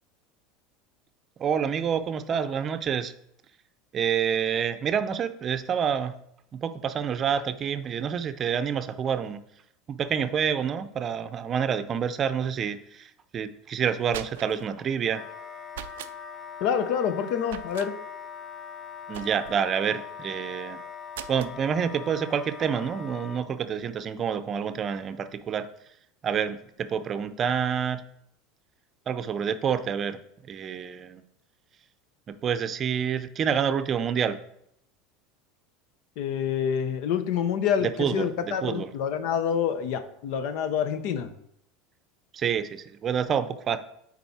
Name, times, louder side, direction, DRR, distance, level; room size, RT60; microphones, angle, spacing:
voice 1, 1.4-3.1 3.9-6.1 6.5-9.4 9.9-15.2 19.1-20.8 21.3-25.7 26.2-28.0 29.1-30.2 30.5-31.2 32.3-34.4 37.8-38.9 42.3-43.8, right 7 dB, 35° right, 10 dB, 0.6 m, -28 dB
sound 1, 13.8-14.7 15.7-16.2 17.5-17.9 19.1-19.7 21.1-21.6, right 11 dB, 90° right, 0.4 m, -40 dB
Wind instrument woodwind instrument, 15.1-23.4, left 7 dB, 20° left, 1.3 m, -41 dB
voice 2, 16.6-17.9 36.2-41.3, left 8 dB, 65° left, 10 dB, 0.8 m, -27 dB
9.1 x 4.1 x 4.2 m, 0.73 s
supercardioid pair, 110°, 0 cm